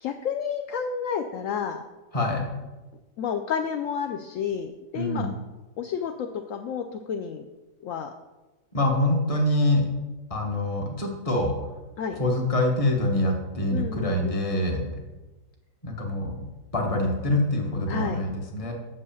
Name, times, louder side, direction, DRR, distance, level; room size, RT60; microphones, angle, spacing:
voice 1, 0.0-1.8 3.2-5.3 5.8-7.4 7.8-8.1 12.0-12.2 13.7-14.4 17.9-18.2, left 7 dB, 70° left, 6 dB, 0.7 m, -30 dB
voice 2, 2.1-2.4 4.9-5.3 8.7-9.9 10.3-11.5 12.2-14.9 15.8-16.4 16.7-18.7, left 1 dB, 25° left, 2 dB, 1.1 m, -25 dB
6.4 x 5.5 x 6.9 m, 1.1 s
omnidirectional pair, 1.8 m